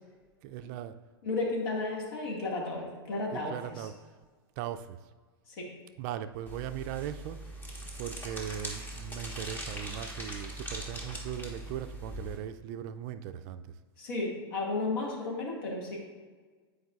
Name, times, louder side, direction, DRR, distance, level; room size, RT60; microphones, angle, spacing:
voice 1, 0.4-0.9 3.3-3.9 4.6-5.0 6.0-7.4 8.0-13.6, right 10 dB, 45° right, 10 dB, 0.3 m, -39 dB
voice 2, 1.2-3.9 5.6-5.7 14.0-16.0, left 2 dB, 65° left, -1 dB, 1.9 m, -33 dB
sound 1, 6.5-12.4, right 1 dB, 15° left, 1.3 m, -41 dB
10.0 x 4.7 x 2.4 m, 1.4 s
hypercardioid pair, 105°, 13 cm